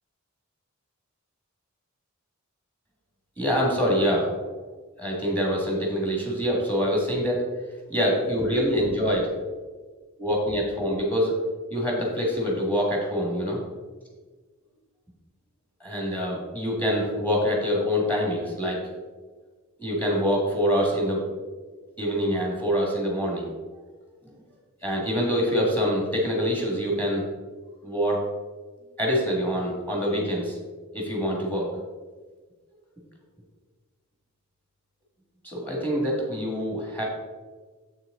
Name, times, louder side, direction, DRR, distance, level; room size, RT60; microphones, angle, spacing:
voice 1, 3.4-4.3 5.0-7.4 7.9-9.3 10.2-11.3 11.7-13.6 15.8-18.8 19.8-21.2 22.0-23.5 24.8-27.2 27.8-28.2 29.0-30.6 30.9-31.7 35.4-37.0, equal, 10° left, -2 dB, 1.7 m, -25 dB
7.4 x 6.3 x 3.8 m, 1.4 s
head